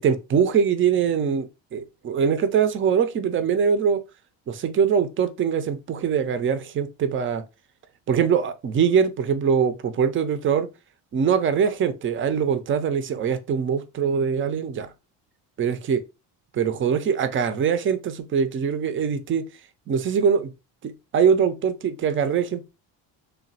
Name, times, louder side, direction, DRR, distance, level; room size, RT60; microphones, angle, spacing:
voice 1, 0.0-4.0 4.5-7.4 8.1-10.7 11.1-14.9 15.6-16.0 16.5-19.4 19.9-20.5 20.8-22.6, right 7 dB, 30° right, 0.3 m, -22 dB
3.0 x 2.2 x 2.6 m
supercardioid pair, 85°, 47 cm